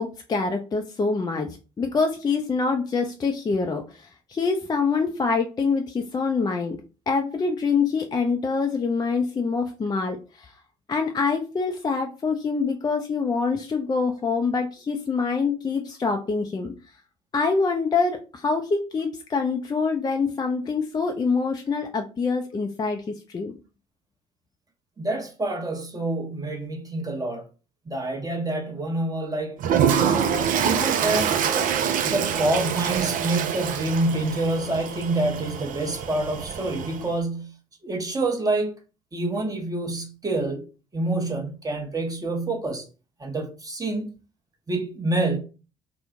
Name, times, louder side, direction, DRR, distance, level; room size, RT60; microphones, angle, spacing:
voice 1, 0.0-6.8 7.1-10.5 10.9-16.7 17.3-23.6, left 4 dB, 25° left, 0.4 m, -25 dB
voice 2, 25.0-27.4 27.9-29.6 30.0-31.7 32.0-37.6 37.8-38.7 39.1-40.7 40.9-42.8 43.2-44.1 44.7-45.4, right 2 dB, 20° right, 0.9 m, -27 dB
Toilet flush, 29.6-37.1, right 8 dB, 50° right, 0.4 m, -25 dB
2.9 x 2.0 x 3.6 m
hypercardioid pair, 50°, 18 cm